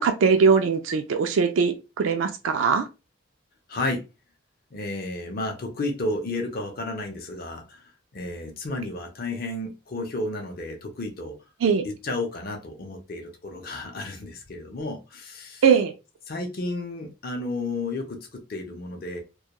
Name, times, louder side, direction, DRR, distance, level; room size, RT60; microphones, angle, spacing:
voice 1, 0.0-2.9 11.6-11.8 15.6-15.9, right 6 dB, 75° right, 0.3 m, -21 dB
voice 2, 3.7-4.0 4.7-7.8 8.1-11.4 11.8-15.6 16.3-19.2, left 2 dB, 45° left, 0.5 m, -32 dB
2.2 x 2.2 x 2.8 m
head